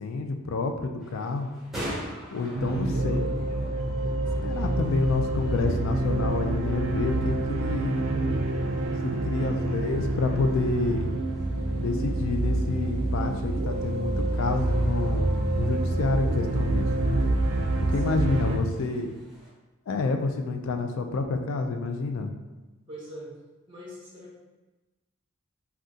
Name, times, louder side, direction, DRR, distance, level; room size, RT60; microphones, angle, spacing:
voice 1, 0.0-1.5 2.3-3.9 4.4-8.1 9.3-11.1 11.8-15.3 15.5-17.2 17.9-19.1 19.9-22.3, left 3 dB, 75° left, 5 dB, 0.4 m, -29 dB
sound 1, 1.0-19.5, equal, ahead, 0.9 m, -46 dB
sound 2, 2.5-18.6, right 2 dB, 70° right, 0.4 m, -27 dB
voice 2, 7.1-7.5 17.8-18.6 22.9-23.3 23.7-24.4, equal, 25° right, -6 dB, 0.8 m, -43 dB
2.6 x 2.3 x 3.6 m, 1.1 s
head